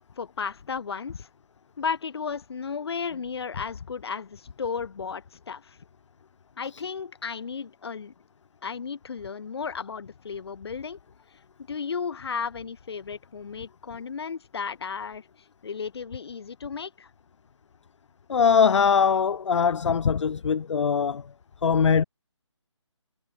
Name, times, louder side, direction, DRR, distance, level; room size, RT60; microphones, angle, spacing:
voice 1, 0.2-1.3 1.8-5.8 6.6-8.1 8.6-11.0 11.7-15.2 15.6-17.1, left 6 dB, 55° left, 1.2 m, -34 dB
voice 2, 18.3-21.3 21.6-22.0, left 6 dB, 70° left, 0.4 m, -21 dB
figure-of-eight pair, 155°, 16 cm